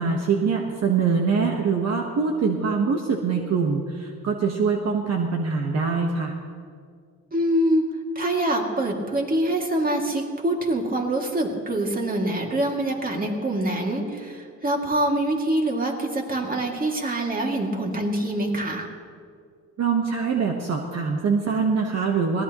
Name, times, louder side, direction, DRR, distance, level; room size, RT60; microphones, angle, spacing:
voice 1, 0.0-6.3 19.8-22.4, right 5 dB, 60° right, 2 dB, 1.3 m, -23 dB
voice 2, 7.3-7.9 8.2-18.9, right 1 dB, 30° right, 1 dB, 2.5 m, -25 dB
22.5 x 17.0 x 3.1 m, 2.1 s
cardioid pair, 90°, 30 cm